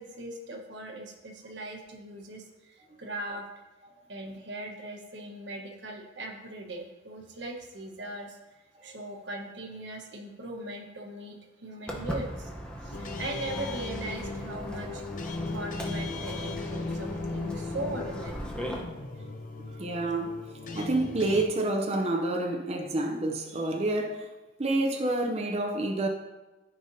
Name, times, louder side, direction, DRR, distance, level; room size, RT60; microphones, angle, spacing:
voice 1, 0.0-3.5 4.1-8.4 8.8-11.4 11.6-12.5 12.8-15.0 15.5-18.4, right 1 dB, 85° right, 1.2 m, -39 dB
Walk footsteps, 11.9-18.8, equal, 5° left, 0.9 m, -39 dB
sound 1, 12.9-21.4, left 3 dB, 45° left, 0.6 m, -37 dB
voice 2, 19.8-20.4 20.7-24.3 24.6-26.1, right 2 dB, 35° right, 0.6 m, -28 dB
14.0 x 5.0 x 2.7 m
head